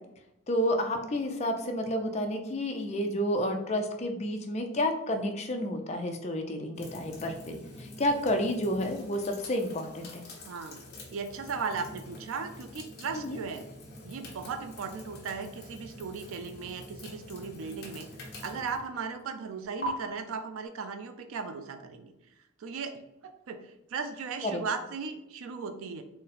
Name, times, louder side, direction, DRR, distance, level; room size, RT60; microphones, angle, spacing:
voice 1, 0.5-10.2 13.2-13.4 24.4-24.6, left 1 dB, 30° left, 4 dB, 0.4 m, -30 dB
sound 1, 6.7-19.9, equal, 45° left, 0.8 m, -46 dB
voice 2, 10.4-10.8 11.1-13.7 14.0-18.1 18.4-22.1 22.6-22.9 23.2-26.0, right 5 dB, 75° right, 7 dB, 0.4 m, -37 dB
3.9 x 2.0 x 4.1 m, 0.89 s
head